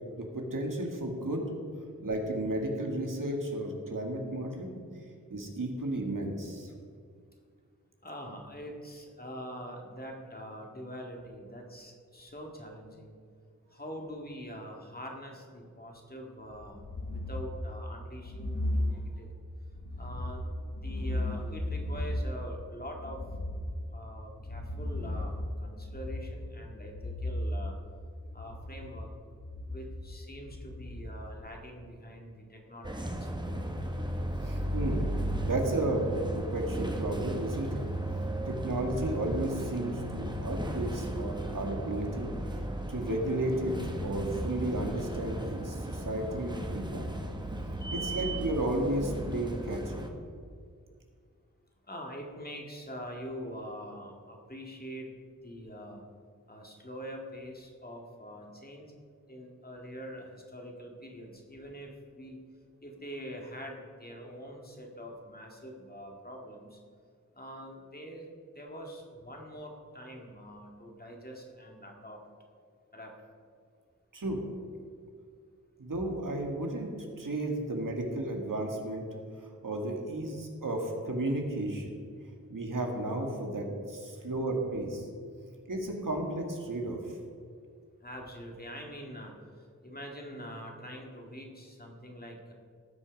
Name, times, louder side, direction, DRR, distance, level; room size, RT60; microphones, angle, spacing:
voice 1, 0.1-1.4 2.0-4.7 5.3-6.7 34.4-35.2 35.4-37.8 38.5-42.6 42.9-43.7 44.0-47.1 47.9-50.0 74.1-74.4 75.8-76.9 77.2-79.1 79.4-81.9 82.5-85.1 85.7-87.2, right 1 dB, 75° right, 1 dB, 1.9 m, -33 dB
voice 2, 8.0-13.2 13.7-19.3 20.0-20.4 20.7-23.2 23.9-25.3 25.6-27.7 28.3-29.1 29.7-33.4 51.9-55.1 55.4-56.0 56.5-58.9 59.3-62.4 62.8-66.8 67.3-68.3 68.6-72.2 72.9-73.1 88.0-89.3 89.8-92.5, equal, 30° left, 0 dB, 2.0 m, -44 dB
sound 1, 16.5-31.5, left 1 dB, 80° left, 1.2 m, -36 dB
sound 2, 32.8-50.1, right 1 dB, 15° right, 1.2 m, -35 dB
18.0 x 6.2 x 5.2 m, 2.1 s
wide cardioid pair, 65°, 32 cm